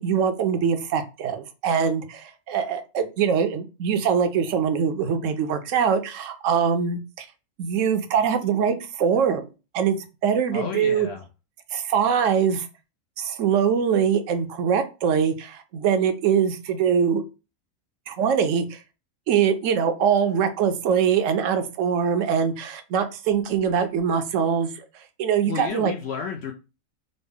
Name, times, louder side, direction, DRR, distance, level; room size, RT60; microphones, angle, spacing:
voice 1, 0.0-7.3 7.6-9.5 9.7-10.0 10.2-11.1 11.7-12.7 13.2-17.2 18.1-18.8 19.3-24.8 25.2-25.9, right 7 dB, 70° right, 8 dB, 0.9 m, -23 dB
voice 2, 10.5-11.2 25.5-26.5, left 7 dB, 65° left, 3 dB, 0.7 m, -31 dB
4.0 x 2.0 x 3.4 m, 0.30 s
omnidirectional pair, 1.5 m